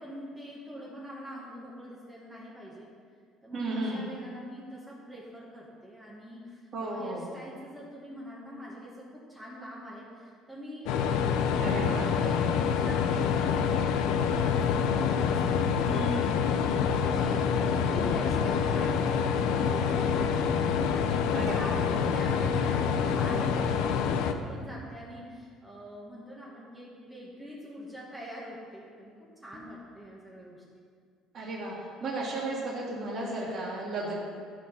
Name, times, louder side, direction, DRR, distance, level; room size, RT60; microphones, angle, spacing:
voice 1, 0.0-2.9 3.4-30.8, equal, 10° right, -6 dB, 1.7 m, -44 dB
voice 2, 3.5-4.0 6.7-7.3 11.6-12.1 15.9-16.6 21.3-21.7 31.3-31.7 32.0-34.1, right 2 dB, 40° right, -10 dB, 2.7 m, -34 dB
sound 1, 10.9-24.3, left 6 dB, 80° left, 0.6 m, -26 dB
14.0 x 5.0 x 5.7 m, 2.1 s
cardioid pair, 130°, 0 cm